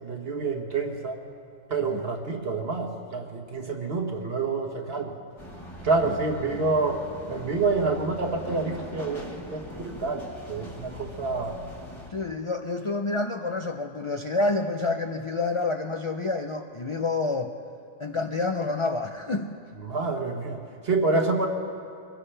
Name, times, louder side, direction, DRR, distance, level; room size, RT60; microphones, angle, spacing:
voice 1, 0.0-1.2 1.7-5.2 5.8-11.6 19.8-21.5, right 3 dB, 50° right, 3 dB, 1.5 m, -28 dB
sound 1, 5.4-12.1, equal, 20° left, 1.4 m, -41 dB
voice 2, 12.1-17.5 18.0-19.6, left 3 dB, 40° left, 4 dB, 0.4 m, -28 dB
24.0 x 16.5 x 3.3 m, 2.5 s
omnidirectional pair, 1.4 m